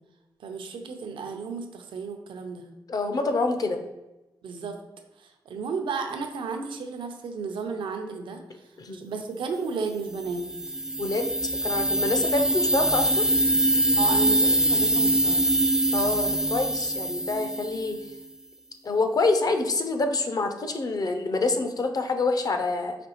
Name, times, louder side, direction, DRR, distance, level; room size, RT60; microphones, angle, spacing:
voice 1, 0.4-2.7 4.4-4.8 5.2-10.5 14.0-15.4, right 4 dB, 85° right, 5 dB, 0.5 m, -33 dB
voice 2, 2.9-3.8 8.8-9.0 11.0-11.3 11.6-13.3 15.9-18.0 18.8-23.0, left 3 dB, 50° left, 7 dB, 0.5 m, -26 dB
sound 1, 10.2-18.1, right 1 dB, 5° right, 0.3 m, -24 dB
5.0 x 3.1 x 3.0 m, 0.99 s
cardioid pair, 80°, 8 cm